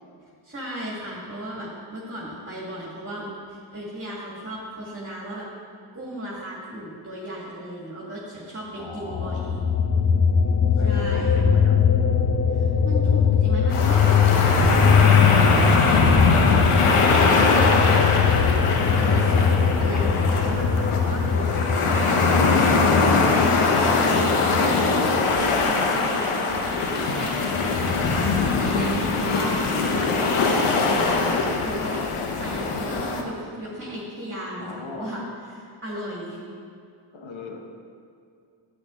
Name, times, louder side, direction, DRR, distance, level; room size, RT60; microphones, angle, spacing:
voice 1, 0.4-5.4 5.9-9.6 10.8-11.5 12.5-18.2 18.9-22.4 22.7-36.4, right 1 dB, 25° right, -5 dB, 2.2 m, -35 dB
voice 2, 8.7-9.5 10.8-11.8 20.6-21.2 34.6-35.1 37.1-37.6, left 3 dB, 70° left, 1 dB, 1.5 m, -37 dB
sound 1, 9.1-25.2, left 6 dB, 30° left, 0.6 m, -21 dB
sound 2, 13.7-33.2, left 4 dB, 90° left, 1.0 m, -22 dB
9.4 x 8.3 x 3.8 m, 2.4 s
cardioid pair, 70°, 49 cm